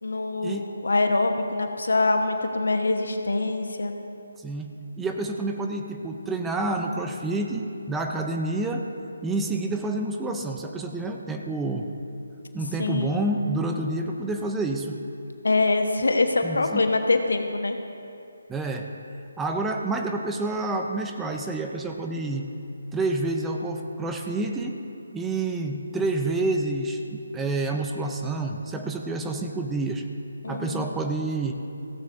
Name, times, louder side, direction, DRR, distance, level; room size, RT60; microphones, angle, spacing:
voice 1, 0.0-4.0 12.8-13.3 15.4-17.8 30.4-30.9, left 3 dB, 75° left, 5 dB, 1.1 m, -24 dB
voice 2, 4.4-8.9 9.2-11.9 12.5-15.0 16.4-16.9 18.5-18.9 19.4-22.5 22.9-24.8 25.1-30.0 30.5-31.5, right 2 dB, 10° right, 3 dB, 0.6 m, -28 dB
16.0 x 15.5 x 2.7 m, 2.6 s
figure-of-eight pair, 155°, 0 cm